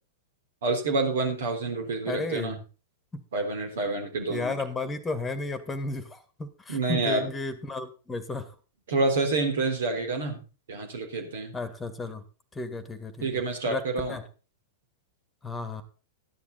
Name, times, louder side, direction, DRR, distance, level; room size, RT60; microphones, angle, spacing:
voice 1, 0.6-2.6 3.3-4.6 6.7-7.3 8.9-10.4 10.7-11.6 13.2-14.2, right 3 dB, 60° right, 3 dB, 3.6 m, -28 dB
voice 2, 2.1-2.6 3.1-3.2 4.3-8.5 11.5-12.2 12.5-13.4 13.7-14.2 15.4-15.8, left 3 dB, 15° left, 12 dB, 1.8 m, -33 dB
13.5 x 10.5 x 4.1 m, 0.34 s
figure-of-eight pair, 95°, 0 cm